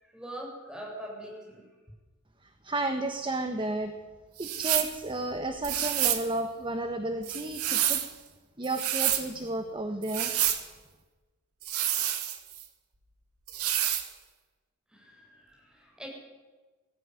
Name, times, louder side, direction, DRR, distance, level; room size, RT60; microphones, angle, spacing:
voice 1, 0.0-1.6 14.9-16.1, right 1 dB, 5° right, -2 dB, 7.5 m, -43 dB
voice 2, 2.6-3.9 4.4-8.0 8.6-10.3, right 2 dB, 20° right, 6 dB, 1.3 m, -32 dB
sound 1, 4.4-5.0 5.6-6.3 7.2-8.1 8.6-9.3 10.0-10.6 11.6-12.6 13.5-14.1, right 11 dB, 75° right, 2.0 m, -28 dB
19.5 x 15.0 x 9.7 m, 1.2 s
head